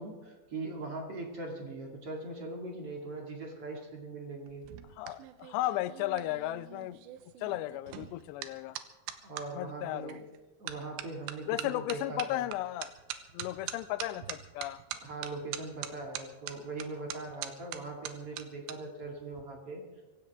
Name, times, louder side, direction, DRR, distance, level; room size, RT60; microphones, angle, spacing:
voice 1, 0.0-4.6 9.2-10.3 10.6-12.5 14.9-19.8, right 2 dB, 40° right, 0 dB, 2.5 m, -41 dB
sound 1, 4.5-9.5 10.1-10.4 10.7-18.8 19.0-19.4, right 12 dB, 85° right, 3.1 m, -42 dB
voice 2, 5.0-7.0 7.4-8.8 9.6-10.2 11.5-12.9 13.3-14.8, left 15 dB, 80° left, 15 dB, 2.8 m, -35 dB
24.5 x 16.0 x 3.6 m, 1.2 s
omnidirectional pair, 5.1 m